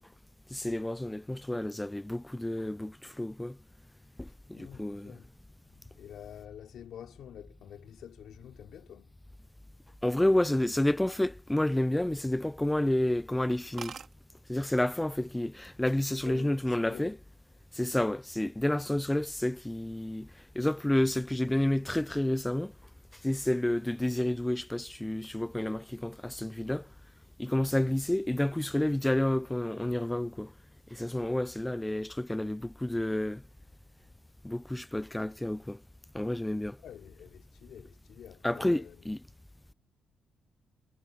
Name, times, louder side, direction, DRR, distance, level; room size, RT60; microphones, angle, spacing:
voice 1, 0.5-3.6 4.2-5.2 10.0-14.0 14.5-17.2 17.7-22.7 23.1-26.9 27.4-30.5 30.9-33.4 34.4-35.8 36.1-36.8 38.4-39.2, left 1 dB, 10° left, 0.4 m, -30 dB
voice 2, 4.3-5.3 6.0-9.1 16.2-17.2 27.8-28.0 36.8-39.1, left 10 dB, 70° left, 3.2 m, -48 dB
sound 1, 11.3-12.3 12.7-12.9 13.2-13.3 13.5-13.6 13.8-14.1 15.0-15.4 15.7-16.1, right 7 dB, 50° right, 1.8 m, -45 dB
cardioid pair, 90°, 0 cm